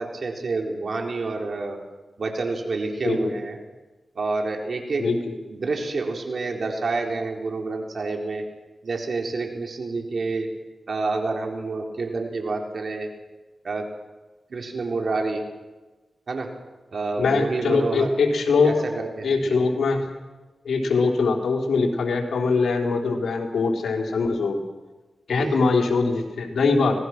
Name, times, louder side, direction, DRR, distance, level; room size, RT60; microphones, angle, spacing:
voice 1, 0.0-1.8 2.2-3.6 4.1-5.0 5.5-8.4 8.8-10.5 10.9-13.1 13.6-13.9 14.5-15.4 16.3-16.5 16.9-18.1 18.6-19.6 25.3-25.6, right 3 dB, 65° right, 2 dB, 4.2 m, -28 dB
voice 2, 5.0-5.3 17.2-18.8 19.2-20.0 20.6-24.6 25.3-27.0, left 4 dB, 85° left, 1 dB, 3.8 m, -22 dB
26.5 x 19.5 x 6.2 m, 1.2 s
cardioid pair, 55°, 0 cm